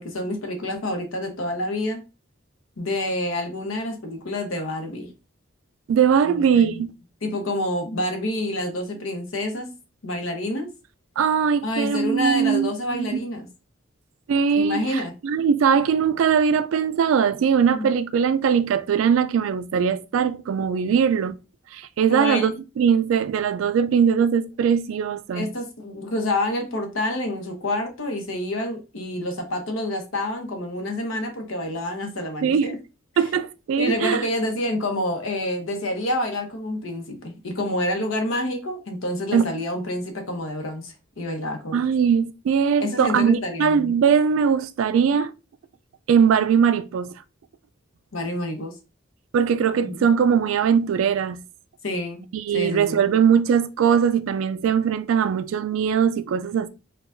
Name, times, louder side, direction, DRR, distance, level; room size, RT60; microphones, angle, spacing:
voice 1, 0.0-2.0 2.8-5.1 6.2-6.8 7.2-9.7 10.0-10.7 11.6-13.5 14.6-15.1 17.7-17.9 22.1-22.5 25.3-32.8 33.8-41.8 42.8-44.0 48.1-48.7 49.8-50.0 51.8-52.3 52.5-53.0, left 1 dB, 90° left, 0.9 m, -28 dB
voice 2, 5.9-6.9 11.2-13.2 14.3-21.4 21.7-25.5 32.4-32.7 33.2-34.2 39.3-39.5 41.7-45.3 46.1-47.1 49.3-51.4 52.3-56.7, right 7 dB, 80° right, 0.3 m, -21 dB
4.5 x 2.3 x 2.5 m
head